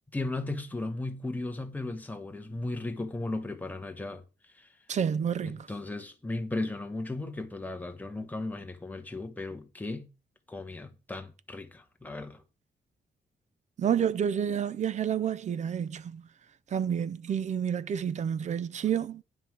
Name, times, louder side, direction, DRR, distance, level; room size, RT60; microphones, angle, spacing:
voice 1, 0.1-4.2 4.5-4.7 5.4-10.1 10.5-12.4, left 2 dB, 10° left, 1.2 m, -36 dB
voice 2, 4.9-5.7 13.8-16.3 16.7-19.2, right 8 dB, 45° right, 0.6 m, -29 dB
9.7 x 5.6 x 6.0 m
wide cardioid pair, 175°, 17 cm